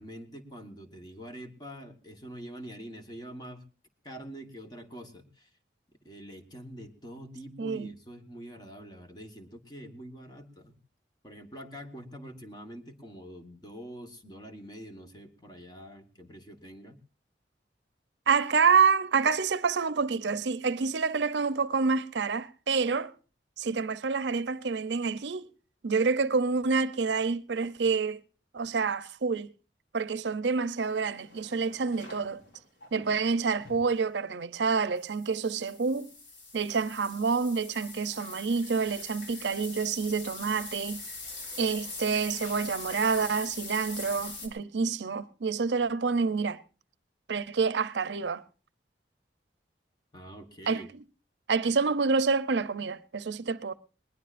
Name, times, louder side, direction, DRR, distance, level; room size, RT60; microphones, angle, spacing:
voice 1, 0.0-3.6 4.0-5.5 6.0-10.8 11.2-17.0 50.1-50.9, equal, 25° left, 1.4 m, -45 dB
voice 2, 7.6-7.9 18.3-23.1 23.6-25.5 25.8-28.2 28.5-29.5 29.9-32.4 32.9-36.1 36.5-41.0 41.6-46.6 47.3-48.4 50.7-50.8 51.5-53.7, right 5 dB, 75° right, 0.6 m, -28 dB
sound 1, 30.8-33.1 33.6-33.9 34.8-44.5, left 3 dB, 90° left, 3.7 m, -43 dB
20.0 x 20.0 x 2.5 m
head